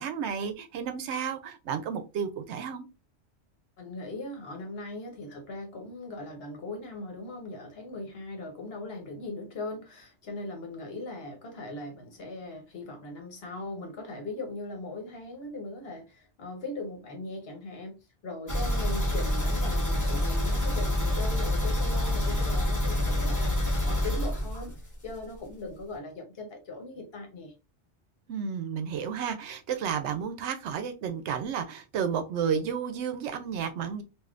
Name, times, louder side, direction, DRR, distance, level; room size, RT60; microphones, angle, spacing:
voice 1, 0.0-2.9 28.3-34.0, right 7 dB, 75° right, 0.8 m, -32 dB
voice 2, 3.8-18.0 18.2-24.7 25.0-27.5, left 2 dB, 60° left, 1.1 m, -39 dB
sound 1, 18.5-25.1 25.4-25.5 25.9-26.0, left 1 dB, 20° left, 0.8 m, -27 dB
3.4 x 2.5 x 2.4 m
omnidirectional pair, 1.2 m